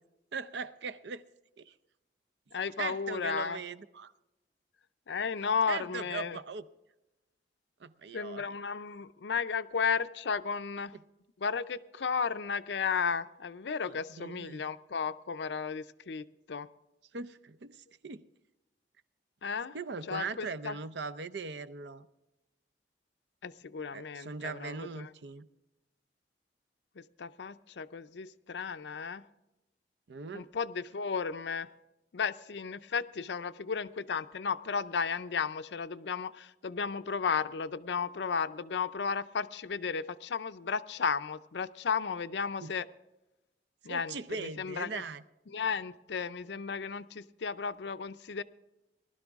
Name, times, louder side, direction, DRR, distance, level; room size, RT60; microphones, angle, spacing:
voice 1, 0.3-1.2 1.6-1.7 2.8-4.1 5.7-6.7 7.8-8.4 13.9-14.6 17.1-18.3 19.7-22.1 23.9-25.5 30.1-30.5 42.6-42.7 43.9-45.2, right 5 dB, 75° right, 0.6 m, -40 dB
voice 2, 2.5-3.6 5.1-6.4 8.1-10.9 11.4-16.7 19.4-19.8 20.1-20.7 23.4-25.1 27.0-29.2 30.3-31.7 32.1-42.9 43.8-44.1 44.4-45.0 45.5-48.4, left 5 dB, 75° left, 0.5 m, -34 dB
19.5 x 12.5 x 3.5 m
head